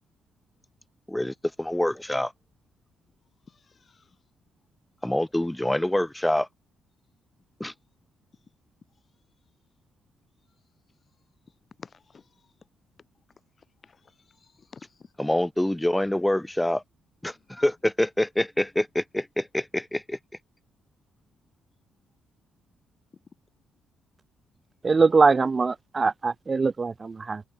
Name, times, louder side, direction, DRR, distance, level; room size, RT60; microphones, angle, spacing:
voice 1, 1.1-2.3 5.0-6.5 7.6-7.7 15.2-16.8 17.2-20.2, left 1 dB, 10° left, 1.8 m, -26 dB
voice 2, 3.5-4.2 11.8-12.3 13.8-15.1, left 5 dB, 45° left, 3.5 m, -51 dB
voice 3, 24.8-27.4, right 4 dB, 40° right, 0.8 m, -22 dB
hypercardioid pair, 45°, 0 cm